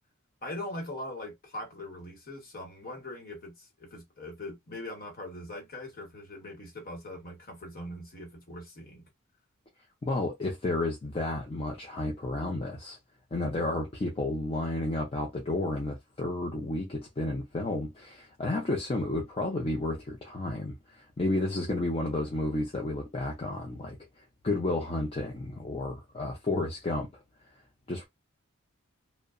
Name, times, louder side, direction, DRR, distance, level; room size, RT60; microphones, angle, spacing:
voice 1, 0.4-9.1, left 1 dB, 40° left, 1.1 m, -41 dB
voice 2, 10.0-13.0 13.3-24.0 24.4-27.1 27.9-28.1, left 2 dB, 25° left, 0.5 m, -31 dB
2.6 x 2.1 x 2.4 m
head